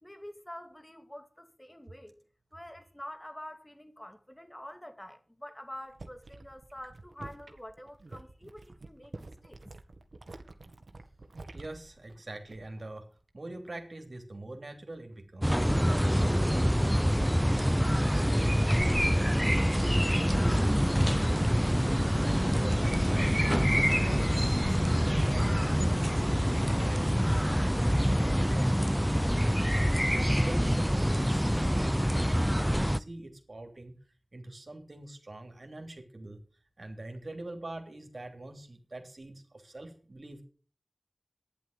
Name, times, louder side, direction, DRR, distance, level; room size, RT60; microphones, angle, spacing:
voice 1, 0.0-2.2 2.5-9.7, left 1 dB, 20° left, 2.3 m, -47 dB
sound 1, 5.7-12.9 13.2-13.6, right 2 dB, 85° right, 1.7 m, -49 dB
voice 2, 11.5-23.5 23.9-33.9 34.3-36.4 36.8-40.4, right 2 dB, 70° right, 3.1 m, -45 dB
sound 2, 15.4-33.0, equal, ahead, 0.6 m, -26 dB
sound 3, 18.6-25.3, left 1 dB, 40° left, 2.4 m, -44 dB
11.5 x 10.5 x 6.7 m
wide cardioid pair, 45°, 0 cm